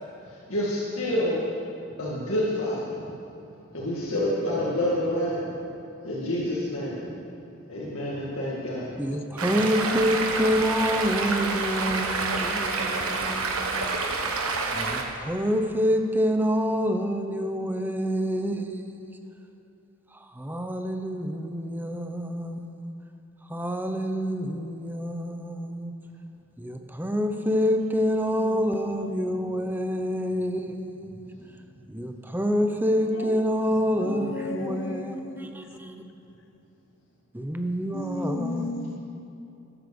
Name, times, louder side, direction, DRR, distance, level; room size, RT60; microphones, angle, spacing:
voice 1, 0.3-1.4 2.0-2.8 3.7-5.4 6.0-7.0 7.7-8.9 27.4-30.4 33.7-34.6, left 1 dB, 75° left, -6 dB, 2.1 m, -30 dB
voice 2, 9.0-14.0 14.7-19.2 20.1-22.9 23.5-25.9 26.6-31.3 31.9-36.0 37.3-38.7, equal, 10° right, 5 dB, 0.7 m, -27 dB
Stream, 9.4-15.0, right 3 dB, 85° right, 1.4 m, -28 dB
voice 3, 33.0-33.4 34.0-35.5 37.9-39.0, left 2 dB, 60° left, 7 dB, 0.9 m, -34 dB
12.0 x 9.9 x 7.0 m, 2.8 s
head